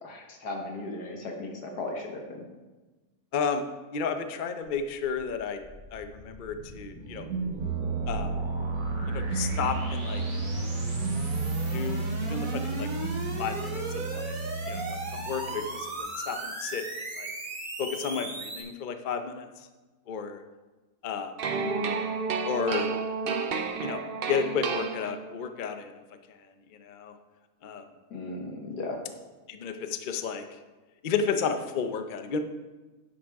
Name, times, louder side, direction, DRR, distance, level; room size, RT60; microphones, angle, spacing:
voice 1, 0.0-2.4 8.3-8.4 21.5-21.9 28.1-29.0, left 2 dB, 80° left, 1 dB, 2.0 m, -37 dB
voice 2, 3.3-3.6 3.9-5.6 5.9-7.3 8.1-8.3 9.1-10.2 11.7-12.0 12.3-12.9 13.4-14.3 14.7-14.8 15.1-16.8 17.2-17.3 17.8-19.5 20.1-20.4 21.0-21.3 22.4-22.9 23.8-24.0 24.3-25.9 26.8-27.1 27.6-27.8 29.5-30.4 31.0-32.4, left 6 dB, 55° left, 7 dB, 0.5 m, -32 dB
sound 1, 4.7-18.6, right 1 dB, 30° right, 1.4 m, -38 dB
sound 2, 7.1-15.9, right 4 dB, 90° right, 1.5 m, -32 dB
sound 3, 21.4-25.5, right 5 dB, 60° right, 0.6 m, -31 dB
10.5 x 8.3 x 3.6 m, 1.2 s
omnidirectional pair, 1.7 m